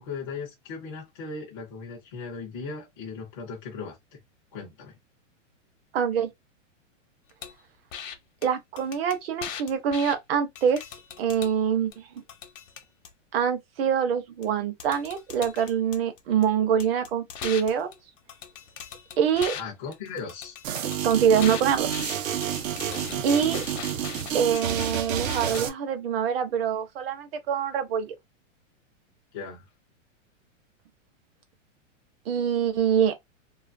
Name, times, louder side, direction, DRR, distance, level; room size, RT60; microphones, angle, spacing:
voice 1, 0.0-4.2 4.5-5.0 19.6-20.6 22.7-23.2 29.3-29.7, left 4 dB, 20° left, 0.4 m, -38 dB
voice 2, 5.9-6.3 8.4-10.8 11.2-12.2 13.3-17.9 19.2-19.5 21.0-21.9 23.2-23.6 24.3-28.2 32.3-33.2, right 8 dB, 50° right, 0.7 m, -25 dB
sound 1, 7.4-7.5 7.9-8.1 8.4-8.5 8.8-10.2 10.6-11.5 11.9-13.1 14.4-14.5 14.8-16.4 16.8-19.6 19.9-25.6, left 8 dB, 70° left, 0.8 m, -39 dB
sound 2, 20.6-25.7, right 9 dB, 85° right, 0.7 m, -30 dB
2.5 x 2.4 x 2.5 m
supercardioid pair, 170°, 39 cm